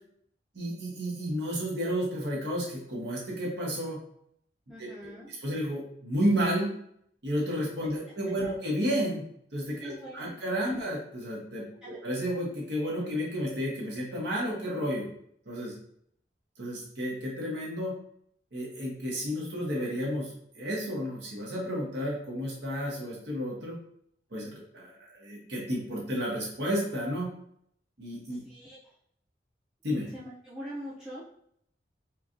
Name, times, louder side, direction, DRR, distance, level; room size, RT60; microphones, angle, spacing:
voice 1, 0.5-4.0 4.8-5.1 5.4-6.7 7.2-9.2 9.5-15.1 15.5-15.7 16.6-17.9 18.5-23.8 24.3-27.3 28.0-28.4 29.8-30.1, equal, 75° right, -4 dB, 1.3 m, -32 dB
voice 2, 4.7-5.3 8.4-8.6 9.8-10.4 11.8-12.0 28.3-28.9 30.1-31.2, equal, 5° right, -9 dB, 0.5 m, -43 dB
4.5 x 2.3 x 2.6 m, 0.68 s
head